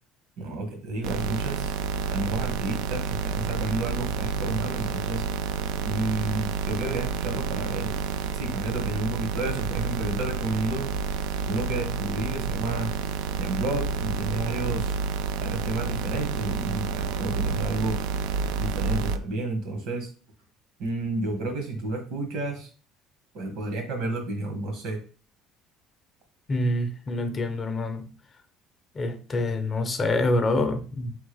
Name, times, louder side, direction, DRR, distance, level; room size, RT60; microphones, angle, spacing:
voice 1, 0.4-1.7 2.1-5.2 5.8-7.9 8.3-10.9 11.5-12.9 13.4-15.0 15.4-18.0 18.6-20.1 20.8-22.7 23.3-25.0, right 2 dB, 70° right, 1.5 m, -31 dB
sound 1, 1.0-19.2, right 5 dB, 90° right, 0.3 m, -29 dB
voice 2, 26.5-28.1 29.0-31.2, left 2 dB, 25° left, 0.5 m, -26 dB
4.1 x 3.5 x 3.4 m
cardioid pair, 145°, 0 cm